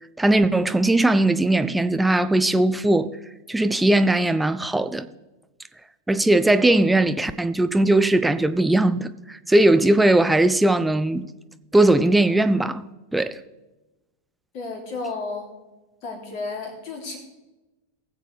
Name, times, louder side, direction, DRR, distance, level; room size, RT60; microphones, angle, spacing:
voice 1, 0.2-3.1 3.5-5.1 6.1-11.2 11.7-12.8 13.1-13.4, right 2 dB, 5° right, 0.5 m, -19 dB
voice 2, 14.5-15.5 16.0-17.2, left 3 dB, 40° left, 3.1 m, -32 dB
20.0 x 7.5 x 3.4 m
figure-of-eight pair, 90°, 0 cm